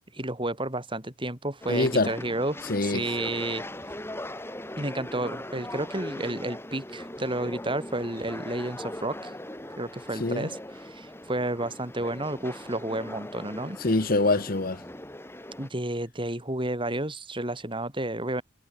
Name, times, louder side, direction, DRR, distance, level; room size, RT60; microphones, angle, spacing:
voice 1, 0.1-3.6 4.8-9.3 9.8-13.8 15.6-18.4, right 1 dB, 25° right, 7.5 m, -31 dB
sound 1, 1.6-15.7, left 1 dB, 15° left, 7.4 m, -40 dB
voice 2, 1.7-2.1 2.7-3.0 10.2-10.5 13.8-14.8, left 2 dB, 50° left, 1.3 m, -24 dB
head